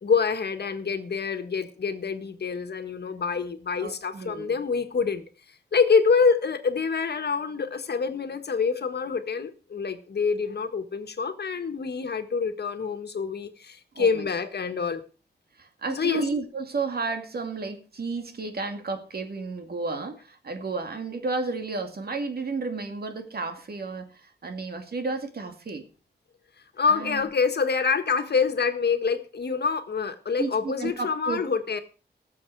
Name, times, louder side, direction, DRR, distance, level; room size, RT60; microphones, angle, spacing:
voice 1, 0.0-5.2 5.7-15.0 15.9-16.3 26.8-31.8, left 5 dB, 70° left, 8 dB, 1.6 m, -26 dB
voice 2, 3.8-4.5 13.9-14.3 15.6-25.9 26.9-27.2 30.4-31.4, right 3 dB, 65° right, 6 dB, 2.3 m, -32 dB
19.0 x 7.3 x 4.7 m, 0.36 s
wide cardioid pair, 110°, 18 cm